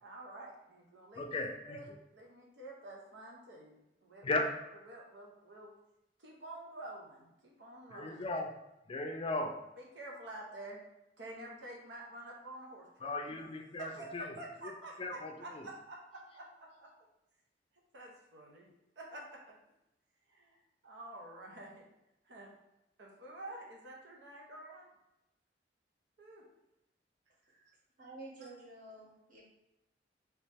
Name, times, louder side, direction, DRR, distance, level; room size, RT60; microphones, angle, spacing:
voice 1, 0.0-1.9 2.1-4.3 4.8-5.7 6.2-8.3 9.8-10.8 11.2-13.4 13.7-16.9 17.9-18.7 19.0-19.5 20.3-21.8 22.2-22.5 23.0-24.9 26.2-26.4 27.5-27.7 28.4-28.5, right 1 dB, 90° right, -2 dB, 0.9 m, -49 dB
voice 2, 1.2-1.8 4.2-4.5 7.9-8.5 8.9-9.5 13.0-14.3 15.0-15.6, left 2 dB, 30° left, 3 dB, 0.4 m, -36 dB
voice 3, 28.0-29.4, right 2 dB, 50° right, -4 dB, 1.2 m, -50 dB
3.1 x 3.0 x 3.3 m, 0.89 s
head